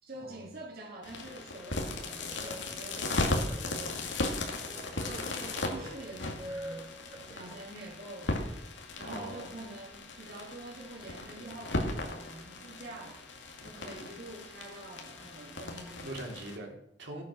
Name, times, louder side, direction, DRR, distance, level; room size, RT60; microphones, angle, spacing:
voice 1, 0.0-4.6 4.9-6.9 7.3-8.4 9.0-13.2 13.6-16.1, right 2 dB, 55° right, -4 dB, 2.5 m, -46 dB
sound 1, 1.0-16.6, left 2 dB, 85° left, 2.4 m, -37 dB
sound 2, 1.4-7.6, right 1 dB, 20° right, 3.5 m, -47 dB
voice 2, 9.1-9.5 16.0-17.2, right 1 dB, 70° right, 0 dB, 3.3 m, -42 dB
16.0 x 8.4 x 6.2 m, 0.79 s
head